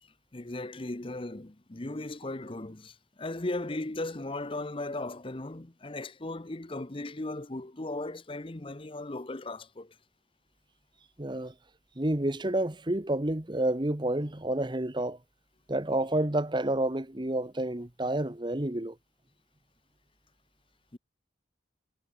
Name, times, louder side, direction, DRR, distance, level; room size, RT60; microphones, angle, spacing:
voice 1, 0.3-10.0 20.9-21.0, left 2 dB, 30° left, 0.9 m, -37 dB
voice 2, 11.2-11.5 12.0-15.2 15.7-19.0, right 1 dB, 25° right, 1.2 m, -29 dB
head